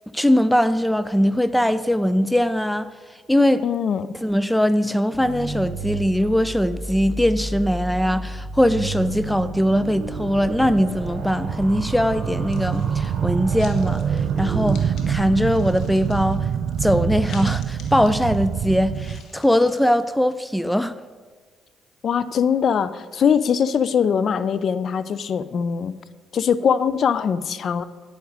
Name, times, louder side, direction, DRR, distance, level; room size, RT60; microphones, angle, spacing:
voice 1, 0.1-2.9 3.3-3.6 4.2-16.5 16.8-20.9, equal, 5° left, 0.4 m, -21 dB
voice 2, 3.6-4.1 22.0-25.9 26.3-27.8, left 7 dB, 55° left, 0.5 m, -21 dB
sound 1, 5.1-15.1, right 2 dB, 20° right, 3.4 m, -33 dB
sound 2, 8.4-19.2, right 8 dB, 70° right, 0.4 m, -26 dB
sound 3, 12.5-13.2 13.6-15.1 15.4-20.0, left 5 dB, 70° left, 1.6 m, -47 dB
9.4 x 9.2 x 5.1 m
supercardioid pair, 75°, 0 cm